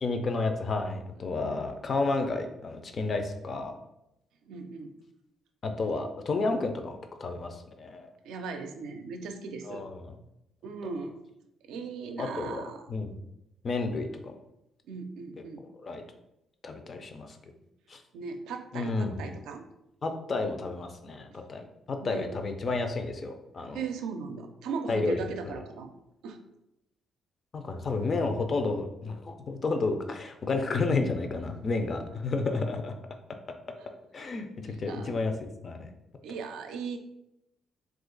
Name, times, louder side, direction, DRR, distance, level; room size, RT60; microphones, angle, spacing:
voice 1, 0.0-3.7 5.6-8.1 9.6-10.2 12.2-13.2 13.6-14.3 15.8-16.0 16.6-17.4 17.9-18.0 18.7-19.2 20.0-23.8 24.9-25.6 27.5-32.9 34.1-35.9, left 3 dB, 45° left, 6 dB, 0.5 m, -31 dB
voice 2, 4.4-4.9 8.2-9.8 10.6-11.1 11.7-12.8 14.9-15.6 18.1-19.6 21.3-21.4 22.0-22.3 23.7-25.9 26.2-26.4 34.7-35.1 36.2-37.0, right 4 dB, 90° right, 5 dB, 0.4 m, -38 dB
2.8 x 2.4 x 3.8 m, 0.86 s
cardioid pair, 90°, 0 cm